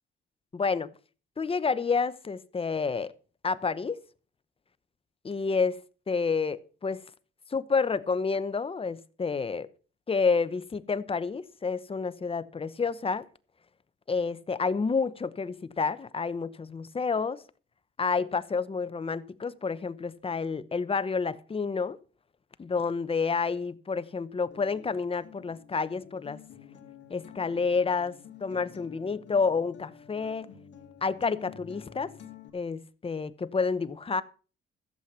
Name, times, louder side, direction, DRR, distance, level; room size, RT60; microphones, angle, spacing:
voice 1, 0.5-0.9 1.4-3.1 3.4-4.0 5.2-5.8 6.1-7.0 7.5-9.7 10.1-13.3 14.1-17.4 18.0-22.0 22.6-26.4 27.1-30.5 31.0-32.1 32.5-34.2, left 5 dB, 30° left, 0.9 m, -29 dB
Acoustic guitar, 24.5-32.5, left 8 dB, 65° left, 2.5 m, -50 dB
14.5 x 7.7 x 5.6 m
cardioid pair, 90°, 20 cm